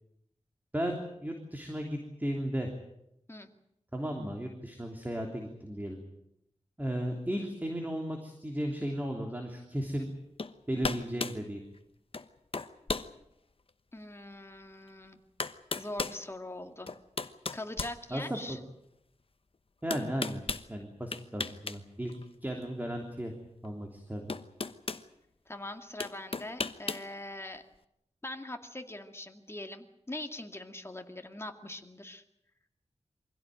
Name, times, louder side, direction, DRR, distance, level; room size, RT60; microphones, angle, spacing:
voice 1, 0.7-2.7 3.9-6.0 6.8-10.1 10.7-11.6 18.1-18.6 19.8-20.4 20.7-22.1 22.4-23.3 23.6-24.3, equal, 15° right, 2 dB, 3.2 m, -35 dB
sound 1, 10.4-10.5 10.8-11.4 12.1-12.3 12.5-13.1 13.7-13.8 14.9-15.0 15.4-16.2 16.9-18.5 19.9-20.7 21.1-21.8 22.1-22.2 23.6-23.7 24.3-25.0 26.0-27.1, left 4 dB, 55° left, 1.1 m, -35 dB
voice 2, 13.9-15.2 15.7-16.9 17.5-18.6 25.5-27.6 28.2-32.2, left 1 dB, 20° left, 5 dB, 2.2 m, -42 dB
24.0 x 16.5 x 9.2 m, 0.81 s
wide cardioid pair, 85°, 12 cm